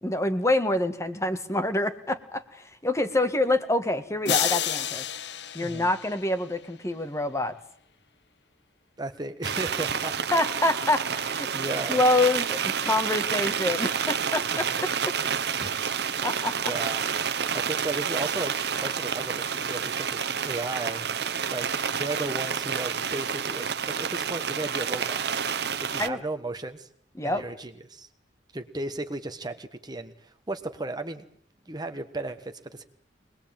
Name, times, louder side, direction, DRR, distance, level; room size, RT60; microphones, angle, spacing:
voice 1, 0.0-5.0 5.5-7.5 10.3-11.5 11.9-14.9 16.2-16.7 26.0-26.2 27.2-27.4, left 2 dB, 15° left, 9 dB, 1.8 m, -26 dB
sound 1, 4.3-6.6, left 9 dB, 70° left, 1.2 m, -30 dB
voice 2, 9.0-10.2 11.5-12.0 14.5-14.8 15.5-15.9 16.7-17.0 17.5-21.1 21.5-25.3 25.8-26.9 27.2-28.1 28.5-31.3 31.7-32.8, right 2 dB, 25° right, 8 dB, 1.4 m, -35 dB
sound 2, 9.4-26.1, right 7 dB, 65° right, 1.2 m, -29 dB
23.5 x 21.0 x 9.0 m, 0.63 s
head